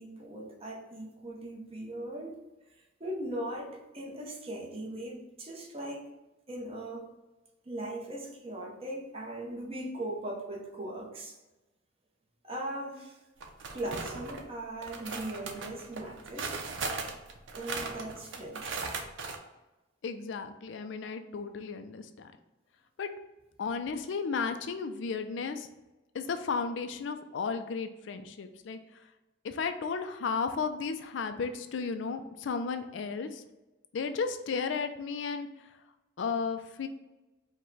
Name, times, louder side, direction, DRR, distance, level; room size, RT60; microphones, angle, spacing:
voice 1, 0.0-2.4 3.0-6.0 6.5-7.1 7.7-11.4 12.4-13.2 13.7-16.6 17.5-18.8, right 1 dB, 30° right, 0.8 m, -39 dB
sound 1, 13.4-14.4 14.8-19.4, right 4 dB, 90° right, 0.6 m, -38 dB
voice 2, 20.0-22.3 23.0-23.1 23.6-25.7 26.1-28.8 29.4-33.4 33.9-35.5 36.2-36.9, left 5 dB, 80° left, 0.4 m, -34 dB
4.7 x 2.2 x 4.0 m
head